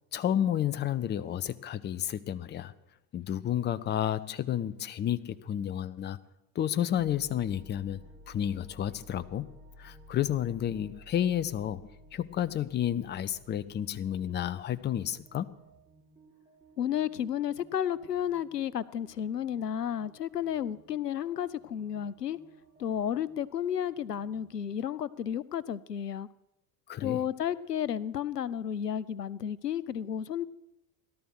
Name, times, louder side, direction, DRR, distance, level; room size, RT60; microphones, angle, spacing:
voice 1, 0.1-2.7 3.1-6.2 6.5-8.0 8.3-9.5 9.8-11.8 12.1-15.5 26.9-27.2, left 10 dB, 25° left, 18 dB, 0.7 m, -31 dB
sound 1, 7.0-24.8, equal, 20° right, 5.0 m, -56 dB
voice 2, 16.8-22.4 22.8-26.3 27.0-30.5, left 9 dB, 85° left, 21 dB, 0.7 m, -32 dB
17.5 x 12.5 x 6.2 m, 0.91 s
figure-of-eight pair, 70°, 47 cm